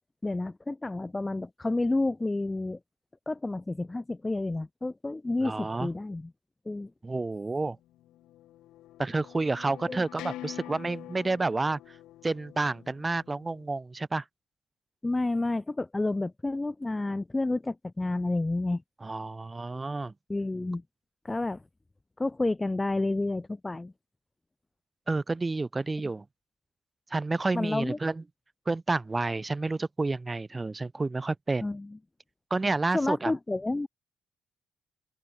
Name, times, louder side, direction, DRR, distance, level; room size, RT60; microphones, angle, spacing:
voice 1, 0.2-2.8 3.3-6.3 6.7-6.9 9.9-10.0 15.0-18.8 20.3-20.8 21.2-21.6 22.2-23.9 27.5-28.0 31.6-31.9 32.9-33.9, left 2 dB, 10° left, 0.4 m, -30 dB
voice 2, 5.4-5.9 7.0-7.8 9.0-12.0 12.2-14.2 19.0-20.1 25.1-26.2 27.1-28.2 28.6-31.7 32.5-33.3, right 3 dB, 15° right, 1.6 m, -30 dB
sound 1, 7.9-13.6, left 14 dB, 90° left, 3.6 m, -46 dB
open air
cardioid pair, 180°, 0 cm